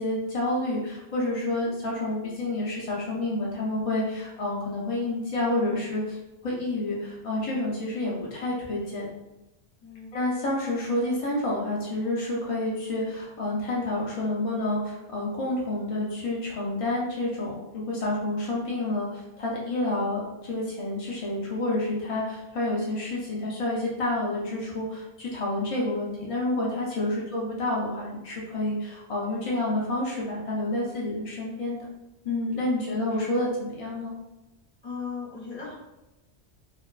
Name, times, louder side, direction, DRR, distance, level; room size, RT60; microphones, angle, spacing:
voice 1, 0.0-9.1 10.1-31.8 32.2-34.1, left 2 dB, 55° left, -4 dB, 0.4 m, -29 dB
voice 2, 9.8-10.1 27.1-27.3 32.5-33.4 34.8-35.7, left 5 dB, 35° left, -7 dB, 1.2 m, -39 dB
2.5 x 2.2 x 2.3 m, 0.97 s
omnidirectional pair, 1.1 m